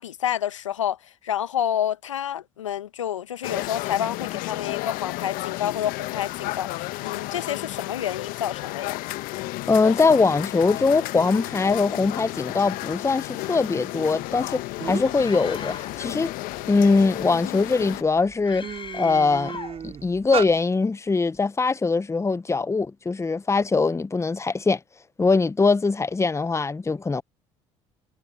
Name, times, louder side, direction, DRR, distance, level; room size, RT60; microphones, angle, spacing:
voice 1, 0.0-9.0, left 10 dB, 90° left, 1.3 m, -29 dB
sound 1, 3.4-18.0, left 20 dB, 65° left, 1.2 m, -32 dB
voice 2, 9.7-16.3 16.7-18.7 18.9-19.6 19.8-24.8 25.2-27.2, left 4 dB, 20° left, 1.0 m, -22 dB
sound 2, 14.4-14.5 14.8-15.2 15.7-17.2 17.8-18.0 18.3-20.5, right 7 dB, 40° right, 4.6 m, -33 dB
Screaming, 15.2-16.0 18.4-19.8, left 6 dB, 35° left, 4.7 m, -39 dB
hypercardioid pair, 60°, 16 cm